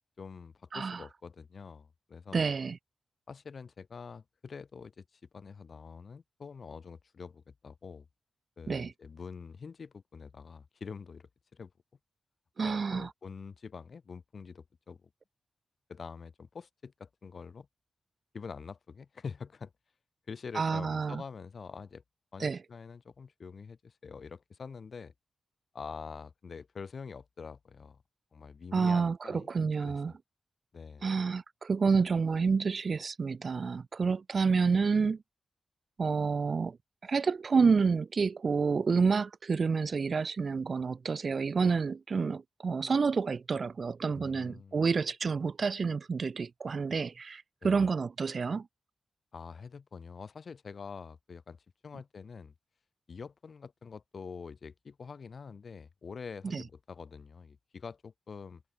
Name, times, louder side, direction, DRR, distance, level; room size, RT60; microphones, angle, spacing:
voice 1, 0.2-2.4 3.3-8.1 8.6-11.7 12.6-15.1 15.9-17.7 18.3-19.7 20.3-22.0 22.3-25.1 25.7-28.0 28.3-29.5 29.8-30.0 30.7-31.1 44.1-44.8 47.6-47.9 49.3-51.6 51.8-52.5 53.1-58.6, left 5 dB, 60° left, 5.2 m, -45 dB
voice 2, 0.7-1.0 2.3-2.8 8.7-8.9 12.6-13.1 20.5-21.2 22.4-22.6 28.7-30.1 31.0-35.2 36.0-36.8 37.0-48.7 56.4-56.6, right 5 dB, 55° right, 0.7 m, -29 dB
wide cardioid pair, 90°, 0 cm